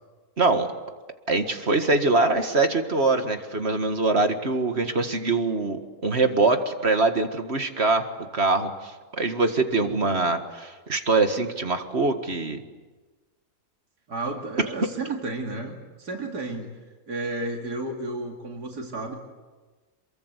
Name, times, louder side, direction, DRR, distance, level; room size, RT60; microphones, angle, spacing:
voice 1, 0.4-0.7 1.3-8.1 8.3-12.6, right 3 dB, 45° right, 7 dB, 1.9 m, -23 dB
voice 2, 14.1-16.7 17.1-19.1, right 2 dB, 90° right, 1 dB, 3.0 m, -32 dB
28.0 x 22.5 x 8.1 m, 1.3 s
omnidirectional pair, 1.6 m